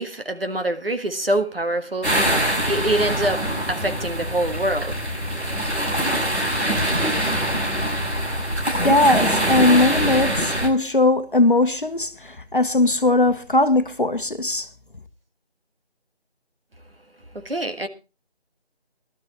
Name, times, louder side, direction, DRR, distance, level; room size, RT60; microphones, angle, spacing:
voice 1, 0.0-5.1 17.3-17.9, right 1 dB, 60° right, 1.7 m, -25 dB
sound 1, 2.0-10.7, equal, 80° right, 6.2 m, -23 dB
voice 2, 8.8-12.1 12.5-14.7, left 2 dB, 50° left, 1.1 m, -19 dB
17.0 x 12.5 x 3.1 m
figure-of-eight pair, 175°, 33 cm